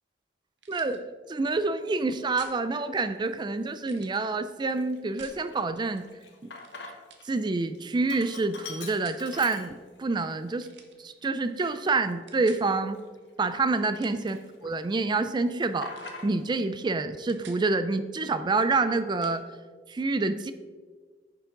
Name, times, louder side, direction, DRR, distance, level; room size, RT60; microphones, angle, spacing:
sound 1, 0.6-1.0 2.4-2.6 3.8-4.2 5.2-5.4 6.5-6.8 7.1-7.3 8.8-9.2 10.6-11.0 12.3-12.7 13.8-14.3 15.9-16.2 16.6-16.7 17.0-17.6 19.2-19.4, right 6 dB, 80° right, 1.1 m, -50 dB
voice 1, 0.7-6.1 6.4-6.5 7.2-10.7 11.0-13.0 13.4-15.9 16.2-19.4 19.9-20.5, right 3 dB, 25° right, 11 dB, 0.4 m, -27 dB
Sink (filling or washing), 2.0-2.2 2.8-3.4 3.7-3.8 4.1-7.3 7.6-10.1 10.6-10.7 11.4-13.9 14.2-15.0 15.3-16.6, left 4 dB, 80° left, 1.2 m, -45 dB
10.0 x 7.0 x 3.8 m, 1.5 s
head